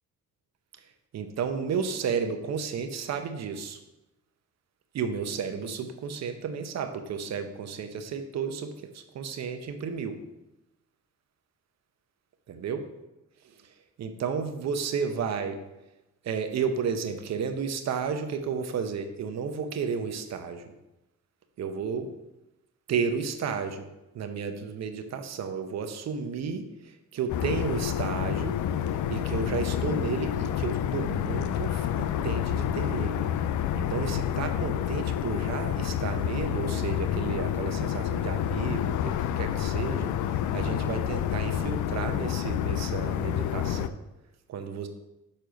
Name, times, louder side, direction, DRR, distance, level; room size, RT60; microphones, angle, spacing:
voice 1, 1.1-3.8 4.9-10.2 12.5-12.8 14.0-15.6 16.2-20.7 21.6-22.1 22.9-23.9 24.1-28.6 29.1-33.2 33.7-44.0 44.5-44.9, right 6 dB, 60° right, 7 dB, 0.9 m, -32 dB
sound 1, 27.3-43.9, left 10 dB, 75° left, 0.5 m, -29 dB
6.7 x 4.3 x 5.2 m, 0.95 s
cardioid pair, 90°, 30 cm